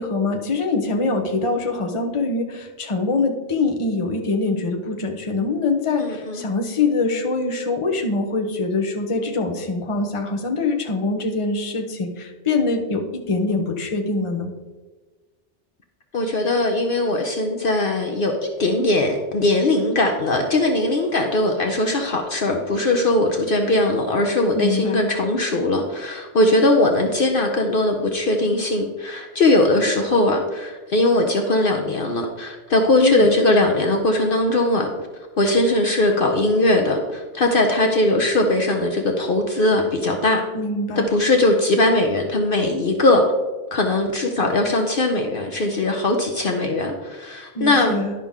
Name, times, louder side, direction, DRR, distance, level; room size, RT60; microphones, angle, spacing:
voice 1, 0.0-14.5 24.6-25.0 33.0-33.4 40.5-41.1 47.5-48.1, left 3 dB, 30° left, 3 dB, 0.9 m, -24 dB
voice 2, 6.0-6.5 16.1-34.9 35.4-40.4 41.0-43.2 43.7-48.0, left 2 dB, 55° left, 3 dB, 0.9 m, -20 dB
11.0 x 5.8 x 3.6 m, 1.3 s
omnidirectional pair, 1.2 m